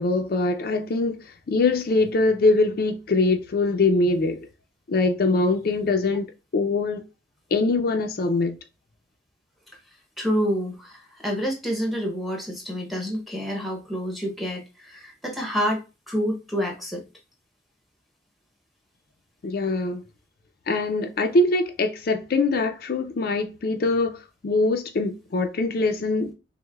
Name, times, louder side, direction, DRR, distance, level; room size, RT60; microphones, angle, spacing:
voice 1, 0.0-4.5 4.9-6.3 6.5-7.0 7.5-8.6 19.4-20.0 20.7-24.2 24.4-26.3, left 3 dB, 50° left, 0.4 m, -23 dB
voice 2, 10.2-17.0, equal, ahead, 0.7 m, -28 dB
6.0 x 2.1 x 2.2 m
head